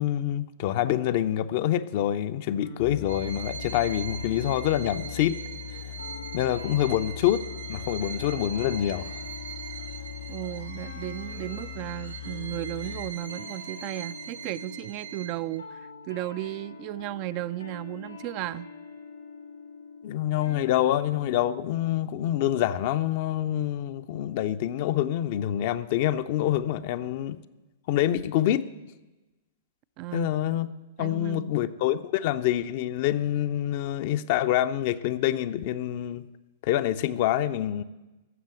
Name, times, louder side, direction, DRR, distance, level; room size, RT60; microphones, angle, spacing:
voice 1, 0.0-5.4 6.3-9.2 20.0-27.4 27.9-28.7 30.1-30.7 31.0-36.3 36.6-37.8, left 12 dB, 50° left, 11 dB, 0.6 m, -26 dB
sound 1, 2.6-21.7, left 4 dB, 90° left, 3.8 m, -45 dB
sound 2, 2.8-13.1, left 11 dB, 65° left, 1.3 m, -40 dB
Bowed string instrument, 3.1-15.6, right 7 dB, 70° right, 1.3 m, -42 dB
voice 2, 10.3-18.7 30.0-30.3 31.0-31.5, right 16 dB, 40° right, 15 dB, 0.4 m, -35 dB
13.0 x 7.4 x 9.0 m, 1.1 s
figure-of-eight pair, 105°, 0 cm